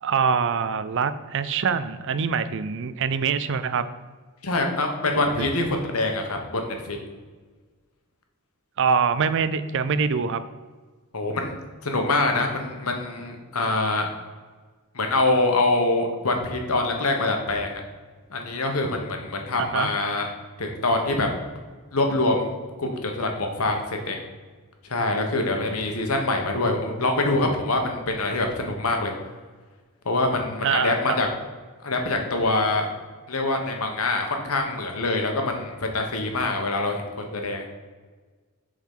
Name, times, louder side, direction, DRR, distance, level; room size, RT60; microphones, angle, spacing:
voice 1, 0.0-3.9 5.4-5.5 8.8-10.4 19.6-19.9 30.6-31.2, right 6 dB, 60° right, 13 dB, 0.4 m, -24 dB
voice 2, 4.4-7.0 11.1-11.5 11.8-14.1 14.9-17.8 18.3-20.3 20.6-21.3 21.9-22.5 22.8-24.2 24.9-29.1 30.0-31.3 31.8-32.9 33.3-37.7, left 2 dB, 90° left, 3 dB, 1.2 m, -25 dB
7.2 x 4.0 x 5.4 m, 1.4 s
head